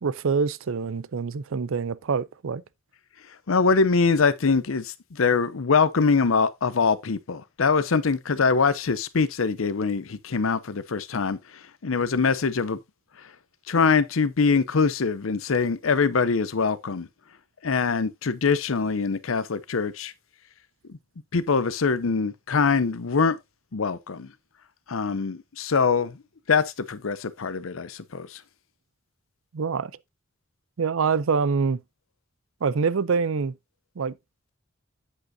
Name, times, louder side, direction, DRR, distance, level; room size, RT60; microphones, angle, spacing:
voice 1, 0.0-2.6 29.5-29.9 30.8-31.8 32.6-33.5 34.0-34.1, right 5 dB, 90° right, 0.5 m, -25 dB
voice 2, 3.5-11.4 11.8-12.8 13.7-17.1 17.6-20.1 20.9-21.0 21.3-23.4 23.7-24.3 24.9-26.2 26.5-28.4, left 5 dB, 90° left, 0.7 m, -23 dB
8.5 x 8.0 x 2.7 m
head